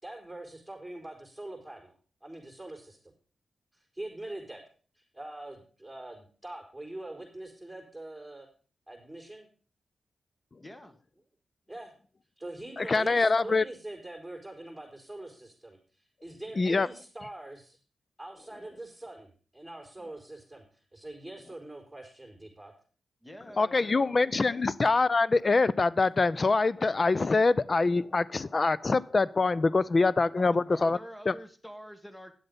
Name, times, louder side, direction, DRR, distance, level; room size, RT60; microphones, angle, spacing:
voice 1, 0.0-1.9 2.2-3.0 3.7-4.6 4.9-8.5 8.9-9.5 11.7-11.9 12.4-17.8 18.2-22.7, right 1 dB, ahead, -2 dB, 4.0 m, -44 dB
voice 2, 10.6-11.0 23.2-24.7 30.4-32.3, equal, 15° left, 8 dB, 1.8 m, -47 dB
voice 3, 12.8-13.6 16.6-16.9 23.6-31.0 31.3-31.4, left 3 dB, 45° left, 20 dB, 0.5 m, -24 dB
10.5 x 7.8 x 5.4 m, 0.40 s
cardioid pair, 55°, 0 cm